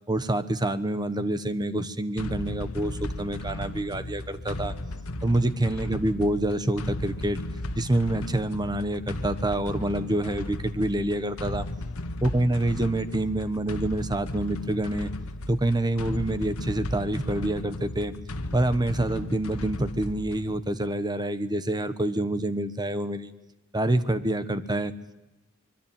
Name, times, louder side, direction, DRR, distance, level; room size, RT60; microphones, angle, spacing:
voice 1, 0.1-4.7 5.2-7.4 7.7-11.6 12.2-15.1 15.5-18.1 18.5-23.3 23.7-24.9, right 1 dB, 20° right, 12 dB, 1.3 m, -27 dB
sound 1, 2.2-20.6, left 1 dB, 80° left, 1.5 m, -35 dB
25.0 x 23.0 x 9.0 m, 1.0 s
head